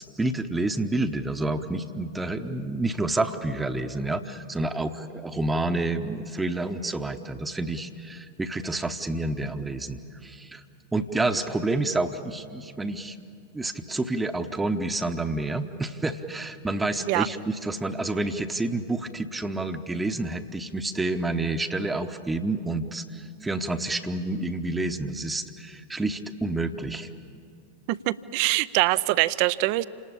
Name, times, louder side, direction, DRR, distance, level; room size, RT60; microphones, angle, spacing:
voice 1, 0.0-10.6 10.9-13.2 13.5-27.1, right 2 dB, 10° right, 8 dB, 1.0 m, -29 dB
voice 2, 27.9-29.8, right 19 dB, 45° right, 17 dB, 0.6 m, -23 dB
28.0 x 19.5 x 8.7 m, 2.5 s
figure-of-eight pair, 90°, 0 cm